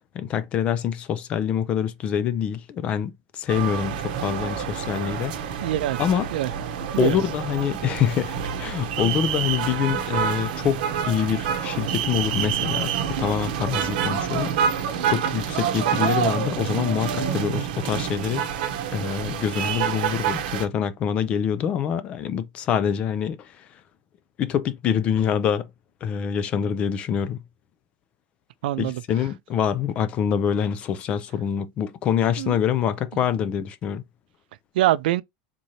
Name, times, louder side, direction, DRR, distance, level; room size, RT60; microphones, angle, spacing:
voice 1, 0.1-5.7 6.0-6.3 7.0-18.6 18.9-23.8 24.4-25.7 26.0-27.4 28.8-34.0, left 8 dB, 25° left, 0.3 m, -25 dB
sound 1, 3.5-20.7, right 8 dB, 70° right, 0.8 m, -27 dB
voice 2, 5.6-6.0 6.3-6.5 6.9-7.2 28.6-29.0 32.4-32.6 34.8-35.2, right 14 dB, 90° right, 0.4 m, -23 dB
3.7 x 2.7 x 3.0 m
supercardioid pair, 175°, 5 cm